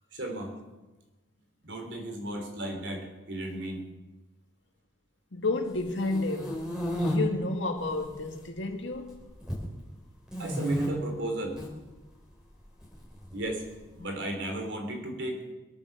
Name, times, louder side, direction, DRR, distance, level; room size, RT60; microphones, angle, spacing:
voice 1, 0.1-0.5 1.6-3.8 10.4-11.6 13.3-13.6 13.9-15.4, right 1 dB, 65° right, 3.5 m, -34 dB
voice 2, 5.3-9.2, left 2 dB, 70° left, 2.1 m, -31 dB
sound 1, 5.8-7.2 7.8-8.4 8.7-9.7 10.3-10.9 11.4-11.7 12.8-13.7, equal, 5° right, 3.6 m, -33 dB
23.5 x 8.8 x 6.9 m
head